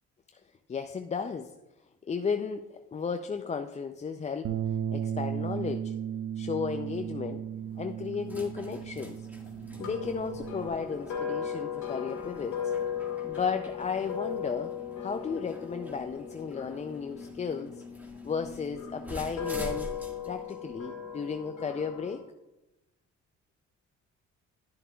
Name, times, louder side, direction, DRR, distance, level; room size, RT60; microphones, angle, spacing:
voice 1, 0.7-1.5 2.0-4.6 4.9-5.9 6.4-7.4 7.8-9.3 9.8-12.7 13.2-14.7 15.0-17.8 18.2-19.9 20.3-22.2, left 5 dB, 25° left, 6 dB, 0.4 m, -34 dB
Bass guitar, 4.4-10.7, right 9 dB, 55° right, 0.5 m, -35 dB
sound 1, 6.4-22.0, left 1 dB, 5° right, 1.6 m, -47 dB
sound 2, 9.8-18.0 18.7-22.2, left 7 dB, 75° left, 1.8 m, -37 dB
10.5 x 7.2 x 2.3 m, 0.96 s
cardioid pair, 90°, 30 cm